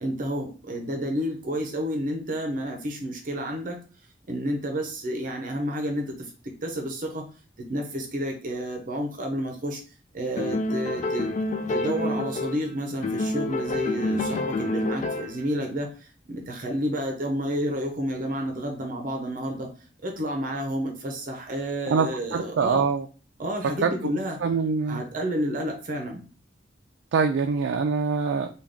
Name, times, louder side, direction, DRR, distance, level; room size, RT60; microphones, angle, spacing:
voice 1, 0.0-3.8 4.3-7.3 7.6-9.8 10.1-11.3 11.7-19.7 20.0-22.9 23.4-24.4 24.9-26.2, equal, 45° right, 2 dB, 0.6 m, -30 dB
sound 1, 10.4-12.7 13.0-15.5, left 2 dB, 40° left, 0.3 m, -28 dB
voice 2, 21.9-23.0 23.6-23.9 24.4-25.0 27.1-28.5, right 5 dB, 85° right, 6 dB, 0.3 m, -24 dB
3.4 x 2.3 x 3.6 m, 0.38 s
head